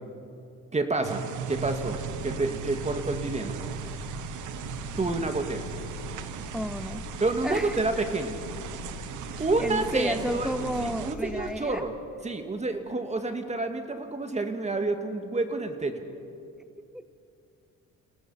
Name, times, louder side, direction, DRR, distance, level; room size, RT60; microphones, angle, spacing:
voice 1, 0.7-1.2 1.5-3.6 5.0-5.7 7.2-8.3 9.4-10.5 10.8-11.9 12.2-16.1, right 3 dB, 25° right, 6 dB, 2.0 m, -29 dB
sound 1, 1.0-11.2, right 9 dB, 85° right, 0.9 m, -38 dB
Engine, 1.5-11.5, left 7 dB, 75° left, 1.9 m, -42 dB
voice 2, 6.5-7.0 7.4-8.0 9.3-11.8 16.8-17.1, equal, ahead, 10 dB, 0.5 m, -33 dB
30.0 x 18.0 x 5.6 m, 2.6 s
cardioid pair, 105°, 30 cm